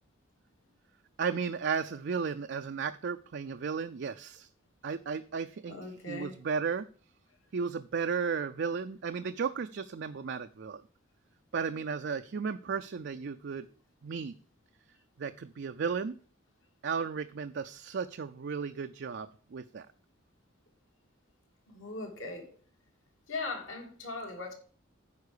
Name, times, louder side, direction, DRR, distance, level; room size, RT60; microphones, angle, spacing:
voice 1, 1.2-4.5 4.8-6.9 7.5-10.8 11.5-13.7 14.0-14.3 15.2-16.2 16.8-19.9, right 5 dB, 55° right, 0.4 m, -34 dB
voice 2, 5.7-6.3 21.7-22.5 23.3-24.5, left 3 dB, 65° left, 2.3 m, -39 dB
9.5 x 4.8 x 6.6 m
head